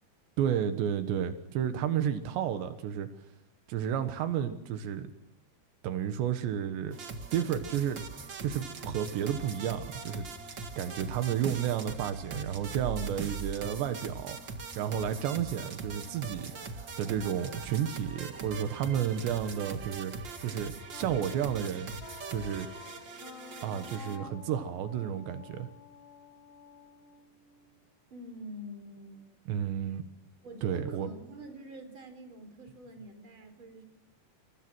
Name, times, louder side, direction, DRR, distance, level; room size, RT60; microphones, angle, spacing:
voice 1, 0.4-3.1 3.7-5.1 5.8-7.0 7.3-8.0 8.4-10.3 10.8-14.4 14.8-20.1 20.4-22.0 22.3-22.7 23.6-25.7 29.5-30.0 30.6-31.1, right 9 dB, 85° right, 3.7 m, -32 dB
sound 1, 6.9-24.2, right 4 dB, 45° right, 1.5 m, -41 dB
Wind instrument woodwind instrument, 20.9-27.8, left 6 dB, 50° left, 2.1 m, -50 dB
voice 2, 28.1-29.2 30.4-33.8, right 1 dB, 30° right, 4.6 m, -46 dB
28.5 x 27.0 x 6.3 m
omnidirectional pair, 4.9 m